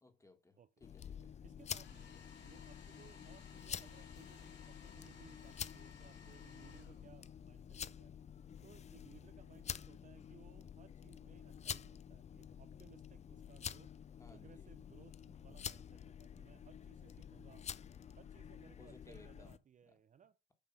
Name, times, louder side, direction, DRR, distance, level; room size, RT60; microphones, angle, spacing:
voice 1, 0.0-1.3 14.2-14.7 18.8-19.6, left 2 dB, 15° left, 1.7 m, -61 dB
sound 1, 0.8-19.6, left 8 dB, 35° left, 0.4 m, -49 dB
voice 2, 1.4-8.1 8.6-13.9 14.3-17.7 18.1-20.4, right 8 dB, 40° right, 0.5 m, -63 dB
Domestic sounds home sounds, 1.6-7.5, left 6 dB, 60° left, 2.8 m, -61 dB
8.9 x 3.5 x 5.5 m
cardioid pair, 105°, 20 cm